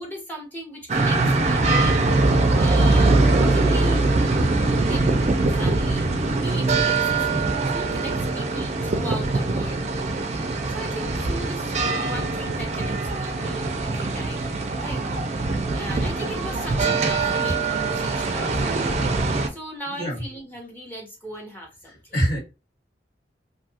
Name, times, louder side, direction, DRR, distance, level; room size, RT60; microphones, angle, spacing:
voice 1, 0.0-4.0 4.9-5.2 5.5-7.3 7.7-9.9 10.7-14.5 14.8-15.0 15.7-19.0 19.5-22.1, equal, 10° left, -1 dB, 0.9 m, -37 dB
sound 1, 0.9-19.5, right 3 dB, 40° right, 0.4 m, -22 dB
voice 2, 19.9-20.2 22.1-22.4, right 1 dB, 55° left, -4 dB, 1.7 m, -24 dB
2.7 x 2.3 x 2.7 m, 0.28 s
head